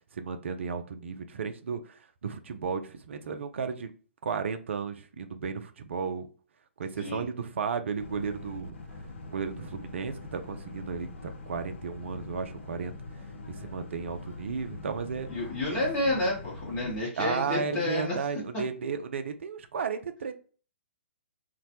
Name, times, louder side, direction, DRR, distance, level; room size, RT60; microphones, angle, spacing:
voice 1, 0.1-3.9 4.2-6.3 6.8-8.8 9.3-12.9 13.5-15.3 15.7-15.8 17.2-20.3, right 5 dB, 70° right, 8 dB, 0.4 m, -34 dB
Boat Water vehicle, 8.0-17.0, left 3 dB, 70° left, 0.5 m, -43 dB
voice 2, 15.3-18.2, left 2 dB, 25° left, -5 dB, 0.8 m, -30 dB
2.2 x 2.0 x 2.8 m, 0.39 s
figure-of-eight pair, 120°, 7 cm